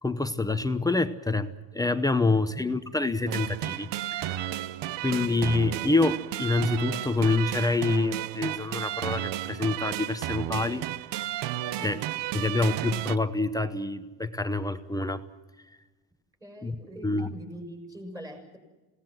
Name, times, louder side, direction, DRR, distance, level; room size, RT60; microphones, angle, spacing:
voice 1, 0.0-4.5 5.0-10.9 11.8-12.0 12.3-15.2 16.6-16.7 17.0-17.3, left 3 dB, 10° left, 9 dB, 0.9 m, -27 dB
voice 2, 2.2-2.7 11.7-12.2 16.4-18.6, equal, 10° right, 4 dB, 6.4 m, -44 dB
sound 1, 3.3-13.2, right 14 dB, 75° right, 0.9 m, -33 dB
27.5 x 18.5 x 7.6 m, 1.1 s
cardioid pair, 140°, 42 cm